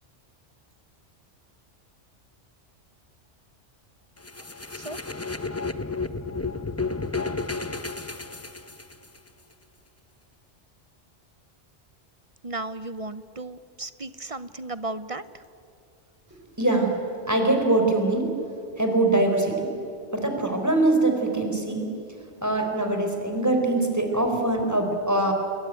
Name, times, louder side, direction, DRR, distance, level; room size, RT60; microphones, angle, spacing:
sound 1, 4.2-9.2, left 3 dB, 15° left, 0.8 m, -32 dB
voice 1, 12.4-15.2, right 2 dB, 35° right, 14 dB, 0.7 m, -35 dB
voice 2, 16.6-16.9 17.3-18.2 18.8-19.7 20.1-21.8 22.4-25.3, right 2 dB, 15° right, 3 dB, 4.3 m, -23 dB
29.0 x 21.5 x 9.2 m, 2.6 s
omnidirectional pair, 1.2 m